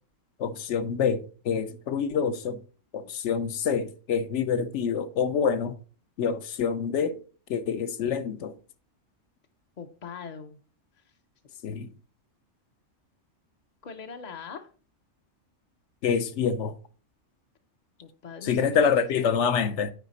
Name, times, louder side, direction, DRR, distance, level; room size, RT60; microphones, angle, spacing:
voice 1, 0.4-2.6 2.9-5.8 6.2-7.2 7.5-8.5 11.6-11.9 16.0-16.7 18.4-19.9, left 6 dB, 70° left, 1.0 m, -26 dB
voice 2, 9.8-10.6 10.9-11.1 13.8-14.7 18.0-19.3, left 5 dB, 45° left, 0.6 m, -42 dB
9.1 x 5.0 x 4.1 m
omnidirectional pair, 1.3 m